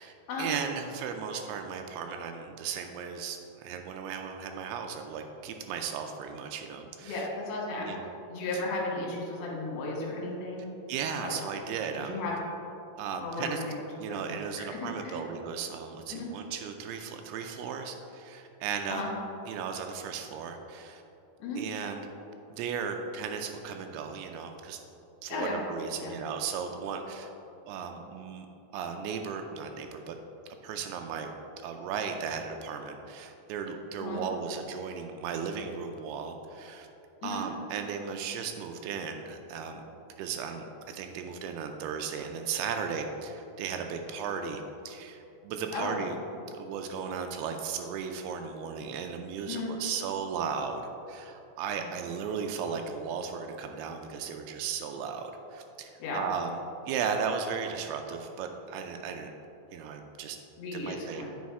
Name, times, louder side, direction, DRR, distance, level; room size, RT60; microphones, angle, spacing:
voice 1, 0.0-7.3 7.8-8.1 8.5-8.6 10.9-12.2 13.0-13.6 14.0-19.2 19.5-21.0 21.6-22.0 22.5-24.8 25.2-27.3 27.7-28.5 28.7-30.2 30.6-31.3 31.6-36.9 37.2-39.8 40.2-46.2 46.5-56.6 56.9-59.3 59.7-60.4 60.7-61.3, right 6 dB, 85° right, 5 dB, 2.3 m, -36 dB
voice 2, 7.0-7.9 8.3-10.7 11.2-11.4 12.0-12.4 13.2-13.7 14.1-15.3 16.1-16.3 18.9-19.1 21.4-21.6 25.3-25.6 26.0-26.1 34.0-34.2 37.2-37.4 45.7-46.4 49.5-49.7 56.0-56.2 60.6-61.3, left 2 dB, 60° left, -3 dB, 2.0 m, -35 dB
8.4 x 4.8 x 4.7 m, 2.8 s
omnidirectional pair, 4.9 m